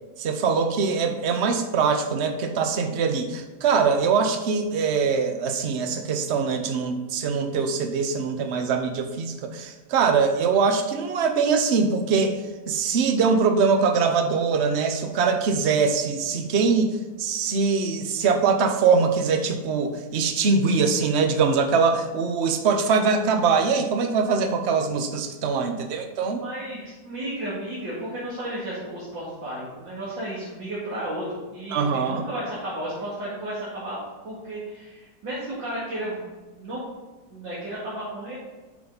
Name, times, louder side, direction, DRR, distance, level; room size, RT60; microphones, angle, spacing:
voice 1, 0.2-12.4 12.7-16.9 17.2-26.4 31.7-32.2, right 5 dB, 50° right, 6 dB, 0.8 m, -23 dB
voice 2, 26.4-36.3 36.6-36.8 37.3-38.4, right 1 dB, 70° right, -9 dB, 2.9 m, -33 dB
9.7 x 6.1 x 4.0 m, 1.3 s
omnidirectional pair, 2.1 m